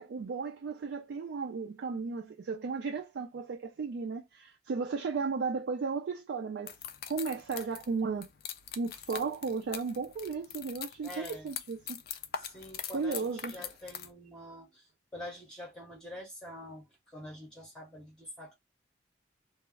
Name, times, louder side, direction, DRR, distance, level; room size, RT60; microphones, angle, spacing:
voice 1, 0.0-6.8 7.1-8.3 8.8-12.0 12.9-13.6, right 4 dB, 75° right, 0.3 m, -35 dB
sound 1, 6.7-14.1, left 9 dB, 55° left, 0.3 m, -43 dB
voice 2, 11.0-11.5 12.3-18.5, left 1 dB, 5° left, 0.6 m, -46 dB
2.4 x 2.0 x 3.5 m
head